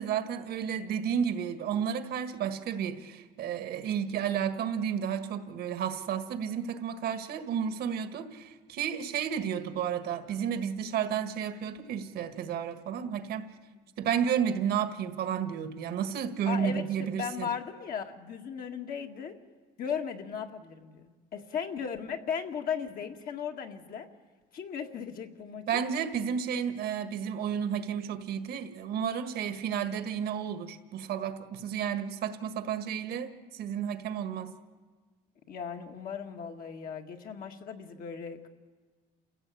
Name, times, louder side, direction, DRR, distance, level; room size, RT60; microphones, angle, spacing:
voice 1, 0.0-13.5 14.0-17.5 25.7-34.5, right 8 dB, 70° right, 9 dB, 1.7 m, -32 dB
voice 2, 16.5-19.4 19.8-24.1 24.5-25.8 35.5-38.5, left 7 dB, 60° left, 3 dB, 2.0 m, -37 dB
29.0 x 16.0 x 8.6 m, 1.4 s
cardioid pair, 110°, 17 cm